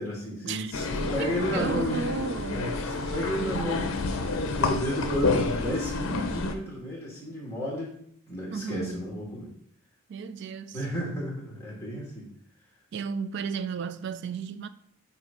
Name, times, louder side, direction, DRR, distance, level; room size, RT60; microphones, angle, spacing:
voice 1, 0.0-2.0 2.5-4.1 4.4-7.9 8.3-9.5 10.7-12.3, equal, 10° left, 1.9 m, -32 dB
sound 1, 0.7-6.5, left 3 dB, 60° left, 0.7 m, -29 dB
voice 2, 1.2-2.7 8.5-8.9 10.1-10.8 12.9-14.7, right 5 dB, 55° right, 0.3 m, -33 dB
8.0 x 2.8 x 5.0 m
head